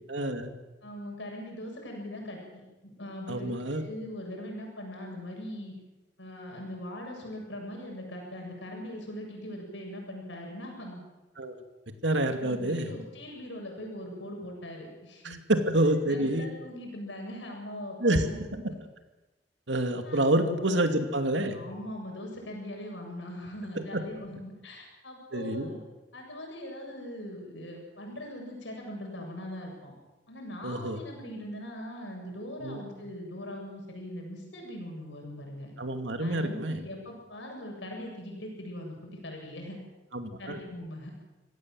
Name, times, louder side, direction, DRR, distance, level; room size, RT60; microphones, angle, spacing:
voice 1, 0.1-0.5 3.3-3.8 11.4-11.5 12.0-12.9 15.2-16.5 18.0-18.2 19.7-21.6 23.7-24.0 25.3-25.7 30.6-31.0 32.6-32.8 35.8-36.8 40.1-40.6, right 1 dB, 85° right, 6 dB, 2.5 m, -27 dB
voice 2, 0.8-5.7 6.2-11.0 12.4-15.4 16.1-18.6 20.0-20.3 20.5-20.9 21.5-25.8 26.1-29.9 30.3-35.7 36.2-39.8 40.4-41.1, left 1 dB, 80° left, 1 dB, 7.8 m, -41 dB
26.0 x 17.5 x 7.8 m, 1.1 s
head